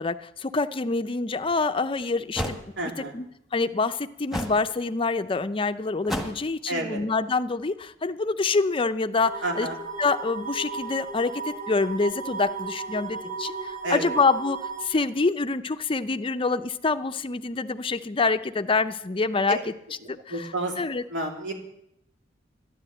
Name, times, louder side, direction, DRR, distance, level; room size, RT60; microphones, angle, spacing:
voice 1, 0.0-2.6 3.0-3.3 3.5-9.7 10.0-11.3 11.7-19.7 20.1-20.5 20.8-21.0, left 3 dB, 30° left, 10 dB, 0.5 m, -26 dB
sound 1, 1.4-1.5 2.4-2.6 4.3-4.6 6.1-6.5, equal, ahead, 1.6 m, -30 dB
voice 2, 2.8-3.1 6.7-7.0 9.4-9.7 13.8-14.1 20.3-20.7 21.1-21.5, right 1 dB, 70° right, 1 dB, 3.0 m, -30 dB
sound 2, 9.2-14.9, right 4 dB, 40° right, 3.8 m, -35 dB
12.0 x 10.5 x 7.7 m, 0.78 s
head